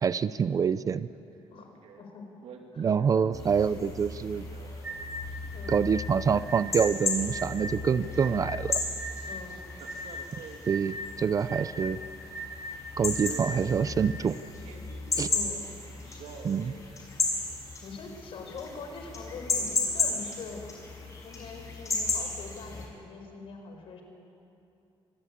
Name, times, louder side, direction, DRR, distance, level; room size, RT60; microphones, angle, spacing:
voice 1, 0.0-1.1 2.8-4.5 5.7-8.8 10.7-12.0 13.0-14.4 15.2-15.3 16.4-16.7, right 6 dB, 35° right, 15 dB, 0.5 m, -26 dB
Male speech man speaking, 1.0-1.2 1.5-2.0 2.4-5.6 6.1-7.4 7.7-8.5 9.7-12.1 12.5-12.7 13.2-15.6 16.0-16.8 17.3-17.4, right 6 dB, 85° right, 2.4 m, -48 dB
voice 2, 1.5-2.3 2.7-3.3 3.5-3.7 5.5-5.9 9.2-9.6 15.3-15.7 17.8-20.7 21.2-24.0, left 4 dB, 60° left, 3 dB, 4.9 m, -43 dB
sound 1, 3.3-22.9, left 3 dB, 30° left, 5.5 m, -35 dB
sound 2, 4.8-14.0, right 1 dB, 15° right, 7.6 m, -40 dB
25.5 x 21.0 x 8.7 m, 2.8 s
cardioid pair, 165°, 10 cm